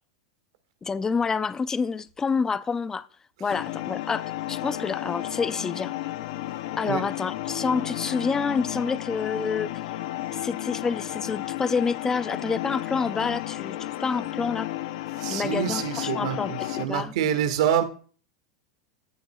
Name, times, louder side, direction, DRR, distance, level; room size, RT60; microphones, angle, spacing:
voice 1, 0.8-3.1 3.4-5.9 6.7-9.7 10.3-14.7 15.3-16.5 16.9-17.1, left 5 dB, 15° left, 0.5 m, -28 dB
sound 1, 3.5-16.9, left 15 dB, 65° left, 0.6 m, -33 dB
voice 2, 15.2-17.8, right 9 dB, 70° right, 1.7 m, -26 dB
14.5 x 7.1 x 2.3 m
supercardioid pair, 135°, 3 cm